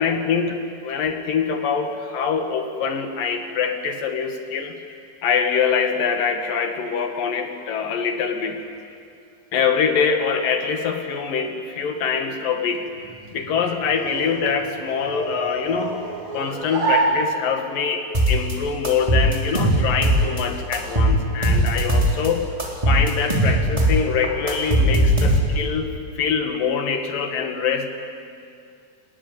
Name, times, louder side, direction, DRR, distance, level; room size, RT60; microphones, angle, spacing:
voice 1, 0.0-4.7 5.2-8.6 9.5-12.9 13.3-16.0 16.3-22.5 22.9-27.9, left 6 dB, 70° left, 5 dB, 3.5 m, -24 dB
sound 1, 12.8-17.9, right 3 dB, 65° right, 7.6 m, -28 dB
sound 2, 18.1-18.5 18.8-20.4 20.7-22.3 22.6-25.7, right 1 dB, 10° right, 3.3 m, -19 dB
28.5 x 20.0 x 9.5 m, 2.4 s
omnidirectional pair, 4.2 m